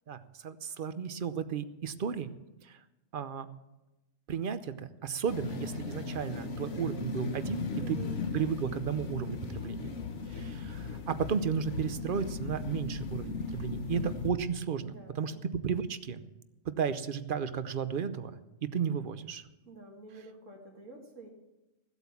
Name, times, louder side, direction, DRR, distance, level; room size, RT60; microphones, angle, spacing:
voice 1, 0.1-2.3 2.6-2.8 3.1-3.5 4.3-8.0 8.3-9.9 10.3-15.3 15.6-16.2 16.8-18.3 18.6-19.4, right 7 dB, 50° right, 12 dB, 0.8 m, -34 dB
sound 1, 5.3-14.3, left 4 dB, 65° left, 1.5 m, -37 dB
voice 2, 7.8-8.2 14.9-15.4 19.7-21.3, right 3 dB, 75° right, 0 dB, 2.5 m, -49 dB
16.0 x 8.2 x 7.1 m, 1.0 s
omnidirectional pair, 1.3 m